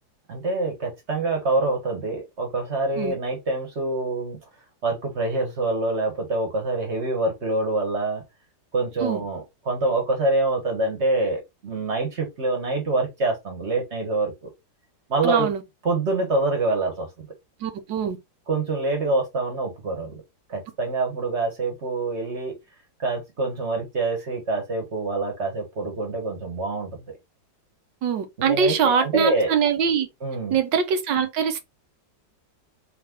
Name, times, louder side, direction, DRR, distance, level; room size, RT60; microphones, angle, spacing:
voice 1, 0.3-4.4 4.8-8.2 8.7-14.5 15.1-15.5 15.8-17.3 18.5-20.2 20.5-22.6 23.0-27.0 28.4-29.5 30.2-30.6, right 2 dB, 40° right, 1.6 m, -26 dB
voice 2, 15.2-15.6 17.6-18.2 28.0-30.1 30.5-31.6, right 6 dB, 75° right, 1.5 m, -23 dB
3.4 x 3.3 x 3.6 m
omnidirectional pair, 2.0 m